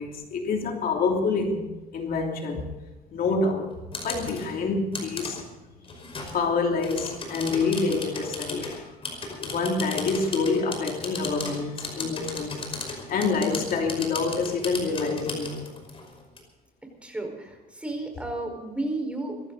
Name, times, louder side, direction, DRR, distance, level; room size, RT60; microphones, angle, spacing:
voice 1, 0.0-2.7 3.1-3.7 4.0-5.4 6.3-8.9 9.4-12.8 13.1-15.6, left 4 dB, 60° left, 2 dB, 3.0 m, -27 dB
sound 1, 3.7-4.5 4.9-5.4 5.9-6.4 6.8-16.4, left 3 dB, 35° left, 5.3 m, -36 dB
voice 2, 17.0-19.4, right 2 dB, 5° right, 3 dB, 4.9 m, -32 dB
22.0 x 15.0 x 4.1 m, 1.2 s
cardioid pair, 110°, 17 cm